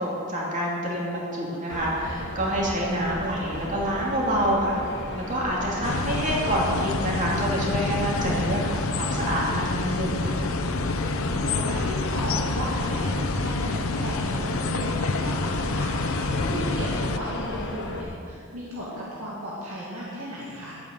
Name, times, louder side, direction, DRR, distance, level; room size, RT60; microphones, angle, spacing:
voice 1, 0.0-4.8 5.1-10.4, right 1 dB, 35° right, -4 dB, 2.6 m, -27 dB
sound 1, 1.7-18.0, left 1 dB, 50° left, 1.5 m, -35 dB
sound 2, 5.8-17.2, left 3 dB, 70° left, 0.7 m, -28 dB
voice 2, 10.8-20.8, equal, 80° right, -7 dB, 2.2 m, -35 dB
12.0 x 8.8 x 6.6 m, 2.3 s
head